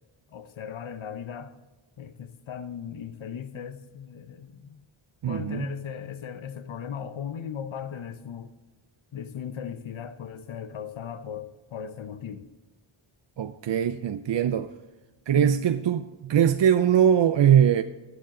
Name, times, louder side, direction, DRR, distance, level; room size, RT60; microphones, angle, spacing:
voice 1, 0.3-1.6 2.0-4.8 5.3-8.5 9.1-12.5 15.3-15.6, left 8 dB, 70° left, 0.9 m, -37 dB
voice 2, 5.2-5.7 13.4-14.7 15.3-17.8, right 9 dB, 60° right, 0.6 m, -21 dB
14.5 x 8.2 x 3.7 m
wide cardioid pair, 90°, 50 cm